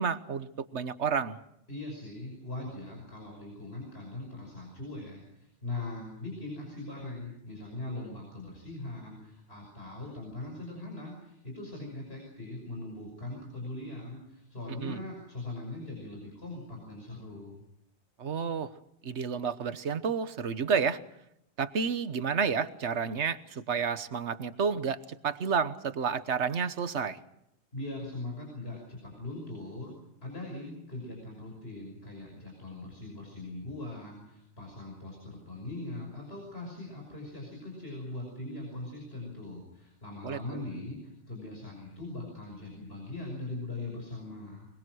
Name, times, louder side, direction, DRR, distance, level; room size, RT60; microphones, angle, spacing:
voice 1, 0.0-1.4 14.8-15.0 18.2-18.7 19.0-21.0 21.6-27.2 40.2-40.6, right 6 dB, 85° right, 13 dB, 1.4 m, -30 dB
voice 2, 1.7-17.6 27.7-29.9 30.2-44.7, left 2 dB, 65° left, 0 dB, 6.3 m, -41 dB
23.0 x 22.5 x 6.3 m, 0.80 s
omnidirectional pair, 1.1 m